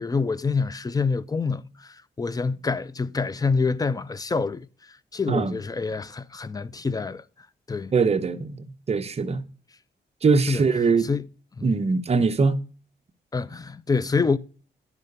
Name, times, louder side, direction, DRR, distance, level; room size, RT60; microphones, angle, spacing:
voice 1, 0.0-7.2 7.7-7.9 10.5-10.6 11.0-11.2 11.6-11.7 13.3-14.4, left 4 dB, 20° left, 0.5 m, -26 dB
voice 2, 7.9-9.4 10.2-11.1 11.6-12.6, right 4 dB, 35° right, 0.9 m, -22 dB
11.0 x 4.8 x 6.7 m
wide cardioid pair, 130°, 19 cm